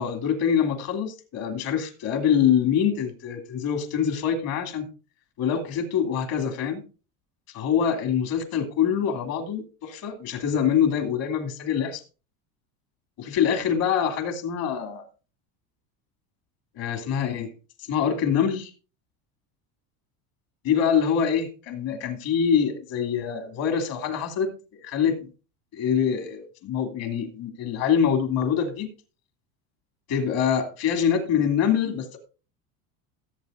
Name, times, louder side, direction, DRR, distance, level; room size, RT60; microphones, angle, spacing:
voice 1, 0.0-4.9 5.4-6.8 7.5-12.0 13.2-15.1 16.7-17.5 17.9-18.7 20.6-25.3 25.7-28.9 30.1-32.2, left 8 dB, 55° left, 2.7 m, -25 dB
16.5 x 8.0 x 2.6 m
supercardioid pair, 135°, 41 cm